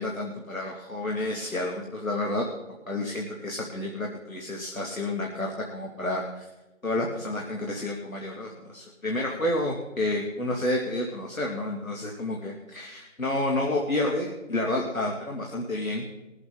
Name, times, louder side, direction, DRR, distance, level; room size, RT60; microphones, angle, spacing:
voice 1, 0.0-2.4 2.9-6.4 6.8-16.0, left 1 dB, 75° left, 0 dB, 2.5 m, -30 dB
21.5 x 8.0 x 3.9 m, 1.1 s
figure-of-eight pair, 175°, 41 cm